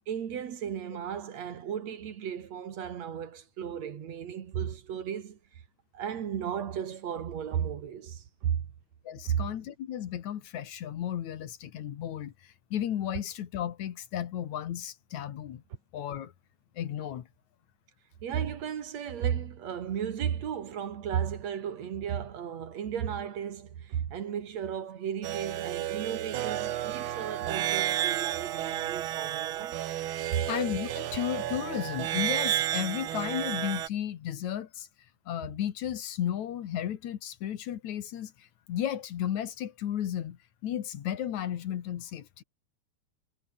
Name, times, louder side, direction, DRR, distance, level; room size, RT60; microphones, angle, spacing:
voice 1, 0.1-5.4 5.9-8.6 9.2-9.5 18.2-29.8 30.3-30.5, right 8 dB, 60° right, 2.9 m, -34 dB
voice 2, 9.0-15.6 15.9-16.3 16.8-17.3 30.5-34.9 35.3-42.4, left 10 dB, 70° left, 2.8 m, -34 dB
sound 1, 25.2-33.9, right 12 dB, 85° right, 1.1 m, -32 dB
omnidirectional pair, 3.5 m